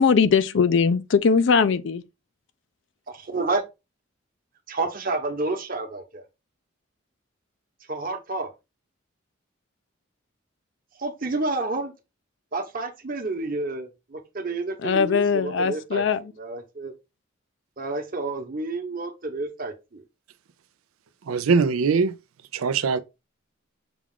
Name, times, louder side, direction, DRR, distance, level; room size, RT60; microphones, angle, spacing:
voice 1, 0.0-2.0 14.8-16.3, left 5 dB, 60° left, 0.4 m, -20 dB
voice 2, 3.1-3.6 4.7-6.2 7.9-8.5 11.0-11.9 12.5-16.0 16.4-16.9 17.8-20.0, right 3 dB, 45° right, 1.0 m, -30 dB
voice 3, 21.3-22.1 22.5-23.0, right 5 dB, 90° right, 0.5 m, -21 dB
6.0 x 2.4 x 3.6 m
head